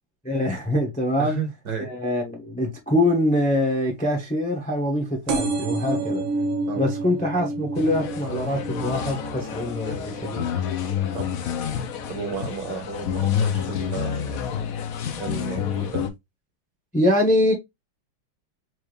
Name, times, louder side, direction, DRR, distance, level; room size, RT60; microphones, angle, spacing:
voice 1, 0.2-1.4 1.8-6.2 6.8-10.5 16.9-17.5, left 1 dB, 10° left, 0.4 m, -24 dB
voice 2, 1.2-1.9 5.9-6.0 6.7-6.8 11.1-11.3 12.1-14.4 15.2-16.1, right 5 dB, 55° right, 1.4 m, -33 dB
sound 1, 5.3-12.5 13.0-13.5 14.3-14.4 14.6-14.7 14.9-15.0, right 3 dB, 75° right, 1.7 m, -30 dB
sound 2, 7.8-16.1, left 8 dB, 85° left, 0.7 m, -28 dB
4.6 x 2.6 x 3.1 m
omnidirectional pair, 2.3 m